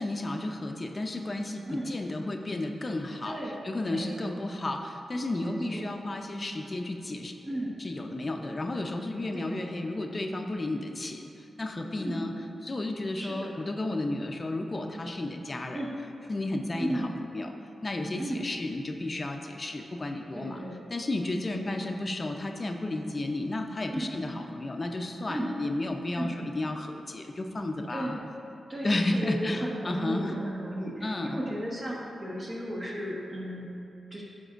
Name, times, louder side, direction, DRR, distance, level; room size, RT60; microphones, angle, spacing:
voice 1, 0.0-3.4 3.6-7.3 7.8-11.3 11.6-12.3 12.6-15.8 16.3-17.1 17.3-17.5 17.8-20.6 20.9-28.2 28.8-30.3 31.0-31.4, left 2 dB, 40° left, 4 dB, 0.5 m, -32 dB
voice 2, 3.2-3.6 3.9-4.4 5.4-5.9 7.4-7.8 9.3-9.6 12.0-12.4 13.2-13.5 15.7-16.0 16.8-17.2 18.2-18.5 20.3-20.8 21.5-22.0 23.9-24.4 25.3-25.7 26.1-26.5 27.9-28.2 28.7-33.7 34.1-34.2, right 1 dB, 40° right, -4 dB, 1.3 m, -35 dB
8.9 x 5.9 x 2.5 m, 2.7 s
supercardioid pair, 45°, 0 cm